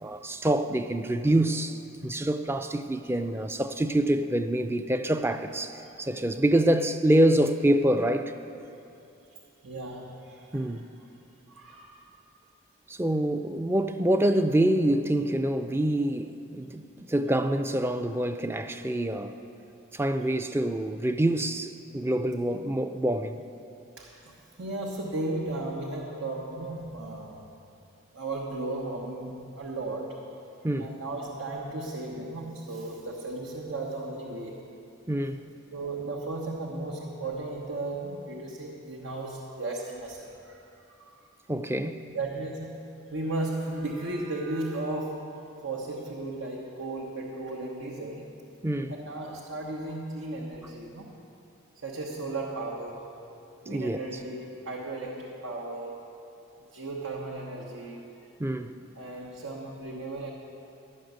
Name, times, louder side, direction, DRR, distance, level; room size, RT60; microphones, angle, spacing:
voice 1, 0.0-8.3 10.5-10.9 12.9-19.3 19.9-23.4 30.6-30.9 35.1-35.4 41.5-42.0 48.6-48.9 53.7-54.0 58.4-58.8, right 1 dB, 10° right, 0.4 m, -26 dB
voice 2, 9.6-10.8 11.5-12.0 15.9-16.0 23.8-27.5 28.1-30.3 30.8-34.6 35.7-41.2 42.1-42.8 43.1-48.4 48.9-51.1 51.8-53.2 53.6-56.1 56.7-58.3 58.9-60.3, right 2 dB, 85° right, 1.1 m, -35 dB
12.5 x 6.6 x 9.2 m
head